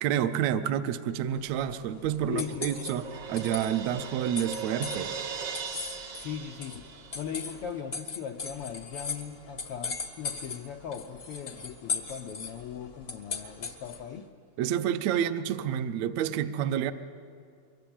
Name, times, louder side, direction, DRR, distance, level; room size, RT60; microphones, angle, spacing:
voice 1, 0.0-5.1 14.6-16.9, right 10 dB, 70° right, 10 dB, 1.7 m, -29 dB
sound 1, 1.3-14.2, left 5 dB, 55° left, 0.6 m, -40 dB
Crash cymbal, 1.8-7.5, right 6 dB, 55° right, 1.2 m, -39 dB
voice 2, 2.3-2.8 6.2-6.9 7.1-14.3, left 8 dB, 90° left, 4 dB, 1.2 m, -39 dB
23.5 x 23.0 x 8.8 m, 2.3 s
omnidirectional pair, 3.8 m